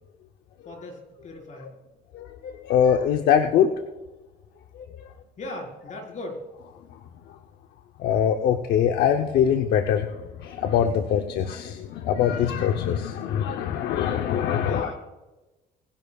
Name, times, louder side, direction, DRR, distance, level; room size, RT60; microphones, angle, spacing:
voice 1, 0.6-1.7 5.4-6.4 14.6-14.9, left 1 dB, 45° left, 1 dB, 4.5 m, -38 dB
voice 2, 2.1-3.7 4.7-5.1 8.0-14.9, left 8 dB, 75° left, 5 dB, 0.8 m, -23 dB
23.0 x 11.0 x 2.4 m, 1.1 s
cardioid pair, 110°, 17 cm